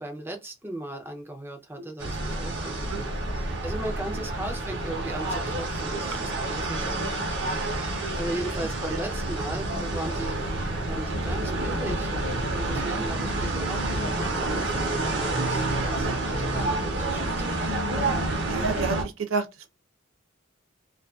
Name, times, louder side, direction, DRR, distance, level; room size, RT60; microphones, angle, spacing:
voice 1, 0.0-3.2 3.6-6.9 8.1-10.4 10.8-12.1 12.5-15.6 16.0-17.7, right 1 dB, 10° right, 0.5 m, -37 dB
sound 1, 2.0-19.0, right 2 dB, 55° right, 0.8 m, -28 dB
voice 2, 18.5-19.0 19.3-19.7, right 4 dB, 90° right, 0.5 m, -30 dB
2.5 x 2.3 x 2.3 m
head